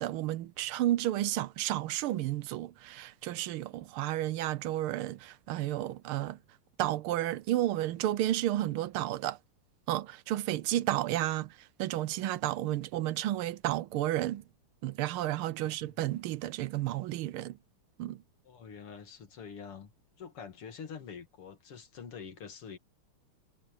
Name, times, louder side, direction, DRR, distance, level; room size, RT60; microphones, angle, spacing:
voice 1, 0.0-6.4 6.8-9.4 9.9-14.4 14.8-17.6 18.0-18.2, right 14 dB, 80° right, 1.5 m, -32 dB
voice 2, 18.4-19.9 20.2-22.8, left 6 dB, 90° left, 3.2 m, -46 dB
omnidirectional pair, 2.4 m